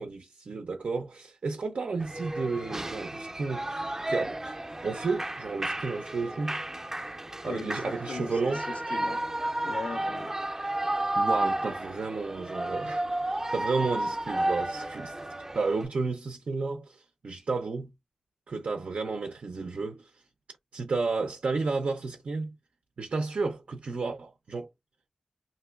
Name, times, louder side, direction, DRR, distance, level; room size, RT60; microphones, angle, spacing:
voice 1, 0.0-3.7 4.1-4.5 4.8-6.6 7.4-8.6 11.2-15.2 15.5-17.9 18.5-20.1 20.7-22.6 23.0-24.7, right 4 dB, 70° right, 0.4 m, -32 dB
Shout / Cheering, 2.0-15.9, right 1 dB, 20° right, 0.5 m, -32 dB
voice 2, 7.4-9.2 9.6-10.3, left 5 dB, 85° left, 0.4 m, -39 dB
2.9 x 2.6 x 2.3 m
cardioid pair, 45°, 2 cm